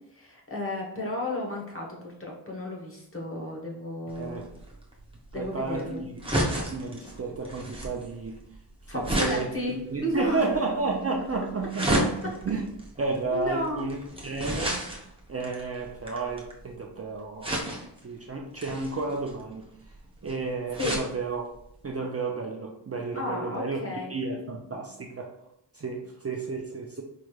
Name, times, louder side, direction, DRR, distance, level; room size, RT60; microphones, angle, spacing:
voice 1, 0.1-4.5 5.3-6.1 8.9-10.4 13.3-13.8 20.8-21.0 23.1-24.1, left 1 dB, 30° left, -1 dB, 1.0 m, -33 dB
sound 1, 4.1-16.7 17.4-18.0 18.6-21.1 21.6-21.7 21.9-22.0, right 1 dB, 10° right, 0.8 m, -32 dB
voice 2, 4.1-4.5 5.3-6.1 6.6-8.4 8.9-9.5 9.9-12.7 13.0-14.0 14.2-17.8 18.0-19.7 20.2-21.4 21.8-25.3 25.7-27.0, right 3 dB, 35° right, 1 dB, 0.4 m, -32 dB
4.7 x 3.1 x 2.3 m, 0.76 s
wide cardioid pair, 100°, 44 cm